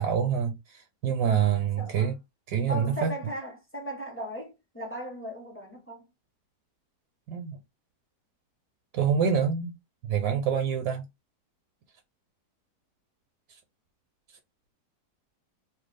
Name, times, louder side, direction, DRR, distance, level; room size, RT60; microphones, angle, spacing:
voice 1, 0.0-2.1 2.5-3.1 7.3-7.6 8.9-9.7 10.0-11.0, right 7 dB, 75° right, 1.1 m, -26 dB
voice 2, 1.5-2.1 2.7-6.1, equal, 15° left, 0.5 m, -37 dB
3.0 x 2.3 x 3.3 m
omnidirectional pair, 1.8 m